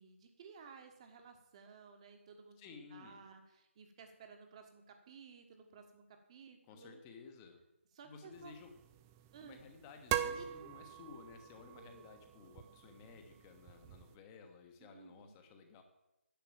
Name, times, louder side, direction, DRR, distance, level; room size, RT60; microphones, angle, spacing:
voice 1, 0.0-7.0 7.9-8.5 9.3-9.6 10.3-10.7 11.7-12.0 14.8-15.3, right 6 dB, 25° right, 5 dB, 1.5 m, -56 dB
voice 2, 2.6-3.2 6.7-7.6 8.0-8.7 9.4-15.8, left 5 dB, 15° left, 5 dB, 1.3 m, -55 dB
sound 1, 8.3-14.2, right 11 dB, 10° right, 0.3 m, -43 dB
10.5 x 8.1 x 7.4 m, 0.93 s
figure-of-eight pair, 150°, 7 cm